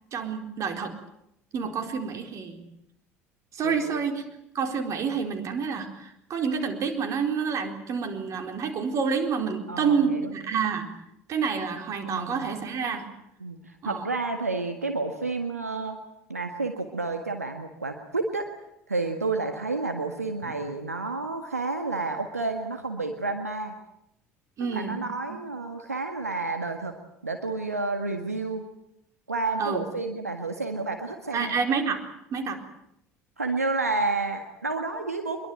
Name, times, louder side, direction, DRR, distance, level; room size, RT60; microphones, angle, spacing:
voice 1, 0.1-1.0 1.5-2.6 3.5-4.2 4.5-10.9 11.3-13.1 13.8-14.0 20.4-20.5 24.6-25.0 29.6-29.8 31.3-32.0 32.3-32.6, right 6 dB, 40° right, 6 dB, 4.2 m, -28 dB
voice 2, 3.6-4.0 9.7-10.3 12.0-12.5 13.4-16.0 16.3-18.5 18.9-23.7 24.6-26.9 27.2-28.6 29.3-31.6 33.4-35.5, right 3 dB, 85° right, 5 dB, 1.7 m, -30 dB
24.0 x 22.5 x 9.1 m, 0.78 s
figure-of-eight pair, 65°, 8 cm